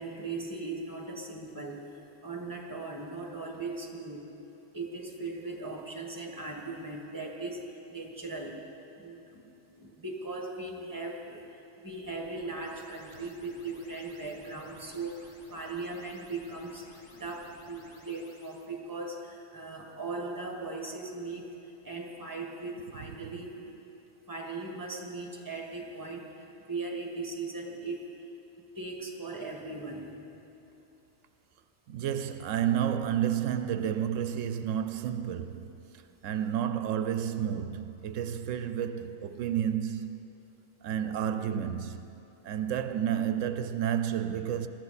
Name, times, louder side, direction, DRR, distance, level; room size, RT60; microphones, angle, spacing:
voice 1, 0.0-4.3 4.7-8.7 9.0-9.5 9.7-11.5 11.8-23.7 24.3-28.0 28.7-30.2, right 3 dB, 15° right, 1.7 m, -39 dB
sound 1, 11.9-18.7, left 1 dB, 60° left, 1.8 m, -57 dB
voice 2, 31.9-40.2 40.8-42.1 42.4-44.7, right 9 dB, 90° right, 1.0 m, -31 dB
21.5 x 13.5 x 4.2 m
omnidirectional pair, 1.3 m